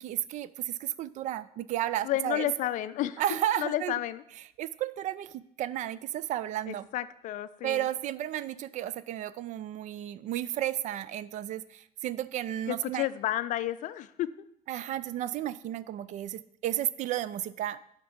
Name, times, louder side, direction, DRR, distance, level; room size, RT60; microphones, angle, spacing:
voice 1, 0.0-2.5 3.2-3.9 4.6-6.9 7.6-13.1 14.7-17.8, right 12 dB, 40° right, 17 dB, 0.4 m, -33 dB
voice 2, 2.0-3.2 3.6-4.2 6.7-7.9 12.7-14.3, left 14 dB, 40° left, 14 dB, 0.5 m, -31 dB
11.0 x 3.7 x 7.1 m, 0.74 s
figure-of-eight pair, 60°, 20 cm